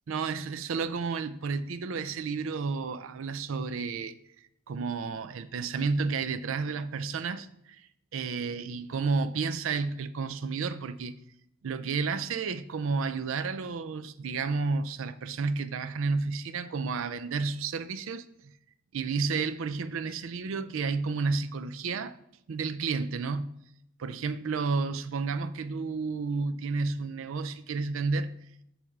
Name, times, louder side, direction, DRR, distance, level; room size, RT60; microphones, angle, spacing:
voice 1, 0.1-4.2 4.7-7.8 8.1-11.1 11.6-18.5 18.9-22.2 22.5-23.5 24.0-28.3, right 4 dB, 65° right, 0.4 m, -31 dB
7.1 x 3.3 x 6.0 m
head